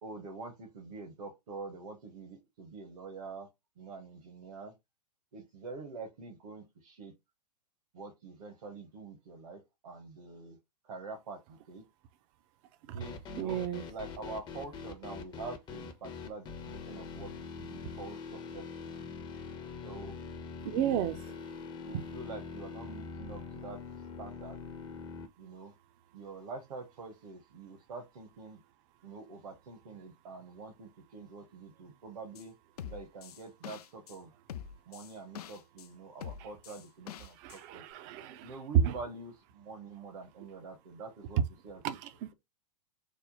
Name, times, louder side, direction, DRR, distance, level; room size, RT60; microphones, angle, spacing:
voice 1, 0.0-3.5 3.8-4.7 5.3-7.1 7.9-10.6 10.8-11.8 12.9-13.6 13.9-17.3 17.6-18.9 19.8-20.2 20.8-21.0 21.7-24.6 25.4-25.7 26.1-28.6 29.0-32.5 32.8-34.3 34.9-37.8 38.4-41.4 41.6-41.8, right 3 dB, 60° right, 1.1 m, -46 dB
sound 1, 13.0-25.3, left 5 dB, 20° left, 0.6 m, -43 dB
voice 2, 13.4-13.8 20.7-21.2 21.9-22.0 37.4-38.9 41.8-42.3, right 9 dB, 35° right, 0.5 m, -31 dB
sound 2, 32.4-32.5 32.8-34.2 34.5-35.9 36.2-37.6 37.9-38.0, left 9 dB, 65° left, 0.4 m, -44 dB
3.5 x 2.1 x 3.9 m
figure-of-eight pair, 105°, 21 cm